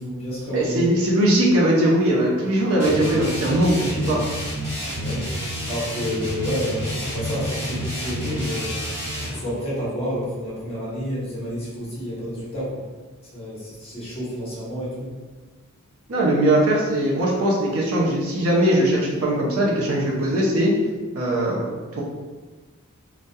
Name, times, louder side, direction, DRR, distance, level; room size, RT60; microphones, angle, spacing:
voice 1, 0.0-0.9 3.8-4.2 4.9-5.3 5.7-8.8 9.2-12.8 13.3-15.1, equal, 30° left, -7 dB, 0.8 m, -30 dB
voice 2, 0.5-4.2 16.1-20.7 21.1-22.0, right 1 dB, 80° right, -3 dB, 0.6 m, -20 dB
sound 1, 2.8-9.4, equal, 10° right, 0.6 m, -29 dB
2.3 x 2.1 x 2.7 m, 1.3 s
head